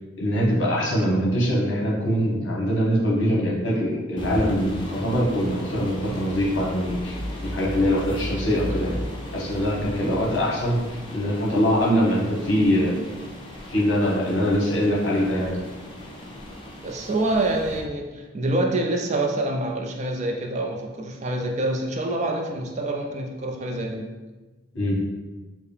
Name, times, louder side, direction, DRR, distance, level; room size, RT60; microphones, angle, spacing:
voice 1, 0.2-7.2 7.4-9.1 9.3-13.0 13.7-15.6 24.7-25.0, equal, 65° left, -4 dB, 1.0 m, -23 dB
sound 1, 4.2-17.8, left 1 dB, 25° left, 0.6 m, -36 dB
voice 2, 16.8-24.1, right 2 dB, 35° right, 2 dB, 0.3 m, -26 dB
4.5 x 2.0 x 3.3 m, 1.2 s
head